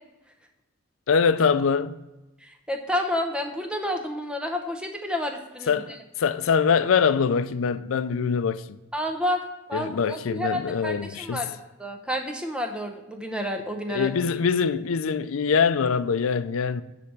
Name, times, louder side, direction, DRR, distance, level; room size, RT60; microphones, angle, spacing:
voice 1, 1.1-2.0 5.7-8.8 9.7-11.5 13.9-16.8, left 6 dB, 80° left, 0.4 m, -23 dB
voice 2, 2.4-6.0 8.9-9.4 9.7-14.1, left 1 dB, 5° right, 0.8 m, -30 dB
9.9 x 3.4 x 6.5 m
head